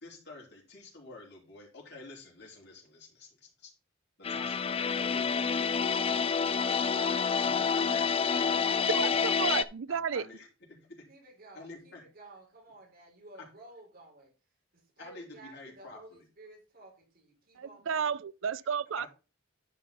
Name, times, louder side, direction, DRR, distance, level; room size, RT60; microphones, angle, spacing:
voice 1, 0.0-2.8 3.2-3.3 3.6-3.7 4.3-5.7 6.0-6.2 7.0-8.1 8.4-8.8 9.0-9.4 9.9-11.0 11.5-12.0 13.4-13.5 15.0-16.2 19.0-19.1, left 3 dB, 55° left, 3.4 m, -49 dB
sound 1, 4.2-9.6, left 6 dB, 30° left, 0.4 m, -28 dB
voice 2, 8.9-10.3 17.6-19.1, right 7 dB, 70° right, 0.4 m, -32 dB
voice 3, 11.1-14.3 14.7-18.1, right 2 dB, 50° right, 4.4 m, -54 dB
10.5 x 5.7 x 4.1 m
head